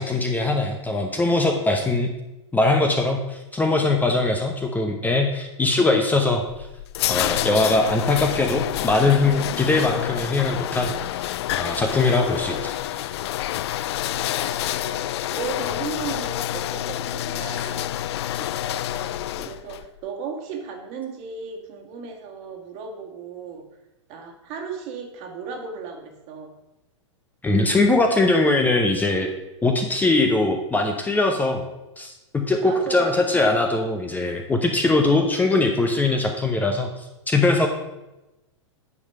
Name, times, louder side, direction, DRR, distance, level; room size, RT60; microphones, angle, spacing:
voice 1, 0.0-2.1 2.5-6.4 7.1-13.0 27.4-29.3 29.6-31.6 32.0-37.7, left 2 dB, 10° left, 4 dB, 0.8 m, -21 dB
sound 1, 6.3-19.8, left 13 dB, 60° left, 0.4 m, -28 dB
voice 2, 14.0-23.6 24.1-26.5 32.6-33.2, right 5 dB, 45° right, 3 dB, 1.8 m, -36 dB
9.6 x 5.0 x 5.5 m, 0.98 s
hypercardioid pair, 105°, 16 cm